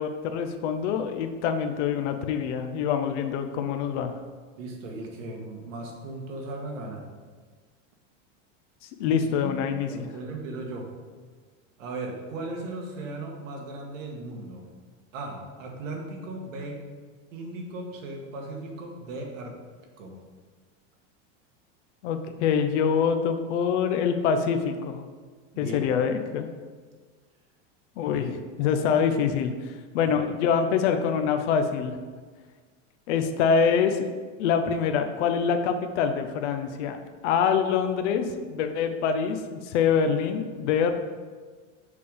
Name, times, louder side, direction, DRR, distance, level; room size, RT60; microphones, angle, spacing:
voice 1, 0.0-4.1 9.0-10.1 22.0-25.0 25.6-26.5 28.0-28.3 28.6-32.0 33.1-34.1 34.4-37.0 37.2-41.0, left 6 dB, 65° left, 7 dB, 0.7 m, -25 dB
voice 2, 4.6-7.0 9.1-9.6 9.9-10.9 11.8-14.7 15.1-16.9 17.3-19.6 20.0-20.1 25.5-25.9 28.1-28.2 30.0-30.1, right 2 dB, 90° right, 1 dB, 1.4 m, -37 dB
6.6 x 3.4 x 5.3 m, 1.5 s
supercardioid pair, 155°, 38 cm